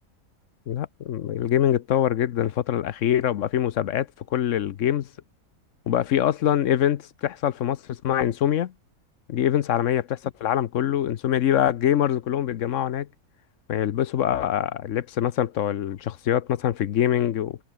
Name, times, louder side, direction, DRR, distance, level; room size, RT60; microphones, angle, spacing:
voice 1, 0.7-5.1 5.9-8.7 9.3-13.1 13.7-17.6, left 10 dB, 60° left, 1.0 m, -24 dB
omnidirectional pair, 1.6 m